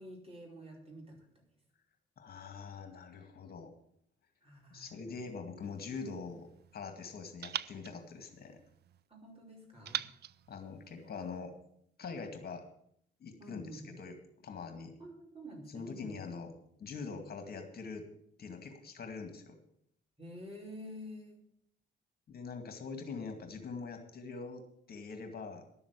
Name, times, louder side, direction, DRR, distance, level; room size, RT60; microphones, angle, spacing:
voice 1, 0.0-1.4 4.4-5.0 9.1-10.0 13.4-13.9 15.0-16.2 20.2-21.4, equal, 30° right, -1 dB, 5.0 m, -49 dB
voice 2, 2.2-3.7 4.7-8.6 10.5-11.5 12.0-12.7 13.2-14.9 15.7-16.5 16.8-18.1 18.4-19.6 22.3-25.6, left 5 dB, 50° left, 5 dB, 2.1 m, -44 dB
sound 1, 5.6-6.8 7.4-9.0 9.8-11.4, right 10 dB, 55° right, 0.5 m, -44 dB
12.0 x 7.1 x 8.3 m, 0.69 s
cardioid pair, 90°, 20 cm